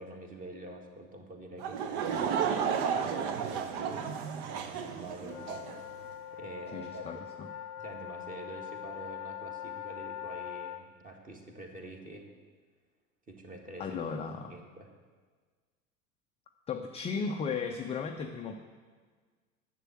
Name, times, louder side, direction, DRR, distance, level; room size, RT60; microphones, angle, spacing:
voice 1, 0.0-2.7 3.0-4.1 4.4-5.7 6.3-7.2 7.8-12.3 13.3-14.0 14.5-14.9, right 1 dB, 20° right, 3 dB, 1.8 m, -46 dB
Laughter / Crowd, 1.6-5.8, right 7 dB, 45° right, 1.0 m, -32 dB
sound 1, 5.2-10.8, left 10 dB, 75° left, 0.8 m, -42 dB
voice 2, 6.7-7.5 13.8-14.6 16.7-18.6, left 5 dB, 15° left, 3 dB, 0.5 m, -35 dB
11.0 x 7.6 x 7.6 m, 1.5 s
figure-of-eight pair, 80°, 45 cm